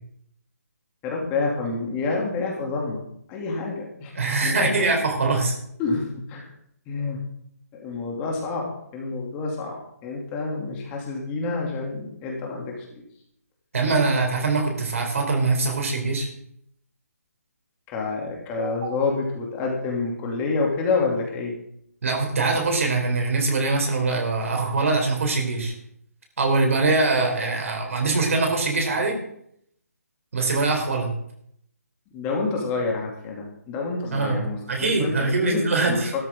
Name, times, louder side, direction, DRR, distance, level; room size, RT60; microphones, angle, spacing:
voice 1, 1.0-3.0 3.3-4.1 4.4-4.7 5.8-6.5 6.9-7.2 7.7-8.7 8.9-9.7 10.0-13.0 17.9-21.5 32.1-36.0, left 3 dB, 20° left, -1 dB, 2.8 m, -28 dB
voice 2, 4.1-5.6 13.7-16.3 18.6-18.8 22.0-25.7 26.4-29.2 30.3-31.1 34.1-34.4 34.7-36.1, right 3 dB, 60° right, 2 dB, 4.0 m, -23 dB
14.0 x 13.0 x 3.8 m, 0.71 s
figure-of-eight pair, 150°, 9 cm